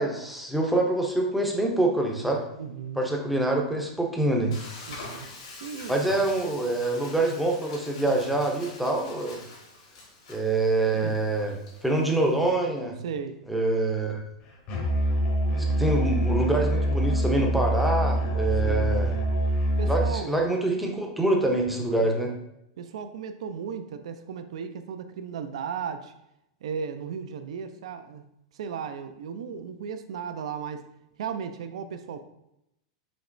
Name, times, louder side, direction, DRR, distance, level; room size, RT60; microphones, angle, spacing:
voice 1, 0.0-2.4 3.0-4.5 5.9-9.4 10.3-11.5 11.8-12.9 13.5-14.2 15.8-19.1 19.9-22.3, right 2 dB, ahead, 0 dB, 0.5 m, -25 dB
voice 2, 2.6-3.0 4.9-5.3 5.6-6.0 8.1-8.2 10.9-11.2 13.0-13.4 15.6-16.0 18.6-19.0 19.8-20.4 21.8-22.1 22.8-26.1 26.6-28.2 28.5-30.9 31.2-32.2, right 7 dB, 75° right, 9 dB, 0.4 m, -36 dB
Frying (food), 4.5-12.5, left 3 dB, 75° left, 1.5 m, -45 dB
Musical instrument, 14.7-20.2, right 1 dB, 35° left, 0.7 m, -25 dB
5.0 x 2.9 x 2.5 m, 0.82 s
supercardioid pair, 160°, 3 cm